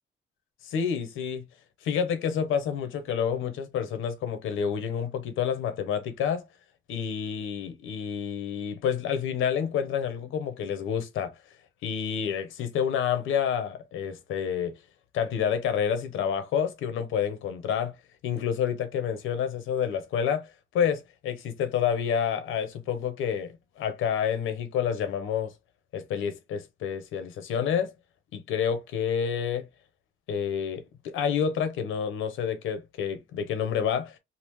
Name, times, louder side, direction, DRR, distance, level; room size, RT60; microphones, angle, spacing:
voice 1, 0.6-1.4 1.8-6.4 6.9-11.3 11.8-14.8 15.1-17.9 18.2-20.5 20.7-25.5 25.9-27.9 28.3-29.7 30.3-34.2, left 7 dB, 85° left, 0.9 m, -29 dB
3.6 x 2.4 x 3.1 m
cardioid pair, 90°, 20 cm